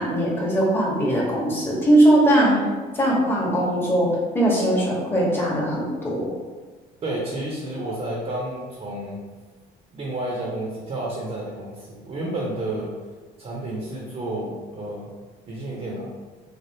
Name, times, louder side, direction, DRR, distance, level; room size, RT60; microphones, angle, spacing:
voice 1, 0.0-2.7 2.9-6.3, right 1 dB, 15° left, -5 dB, 0.9 m, -20 dB
voice 2, 7.0-9.2 9.9-12.9 13.4-15.1 15.5-16.1, right 1 dB, 40° right, -3 dB, 0.7 m, -30 dB
3.3 x 2.4 x 2.7 m, 1.3 s
cardioid pair, 110°, 17 cm